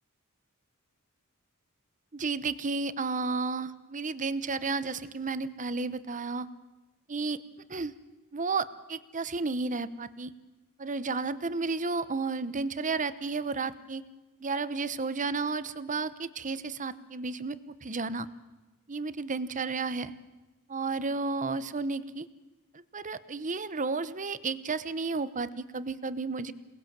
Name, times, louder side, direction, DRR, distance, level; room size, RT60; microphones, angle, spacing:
voice 1, 2.1-6.5 7.1-7.4 7.7-7.9 8.3-10.3 10.8-14.0 14.4-18.3 18.9-20.1 20.7-22.3 22.7-26.5, right 4 dB, 35° right, 14 dB, 1.0 m, -32 dB
27.5 x 19.5 x 7.5 m, 1.1 s
head